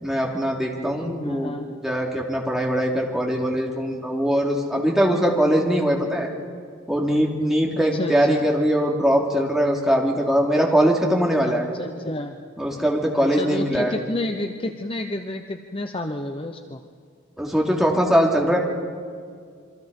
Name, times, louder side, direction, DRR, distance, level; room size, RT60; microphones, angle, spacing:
voice 1, 0.0-1.5 1.8-6.3 6.9-11.6 12.6-13.9 17.4-18.6, equal, ahead, -1 dB, 2.9 m, -21 dB
voice 2, 1.0-1.7 7.9-8.4 11.4-12.4 13.3-16.8, left 1 dB, 25° left, 6 dB, 0.8 m, -30 dB
27.0 x 24.5 x 5.4 m, 2.1 s
head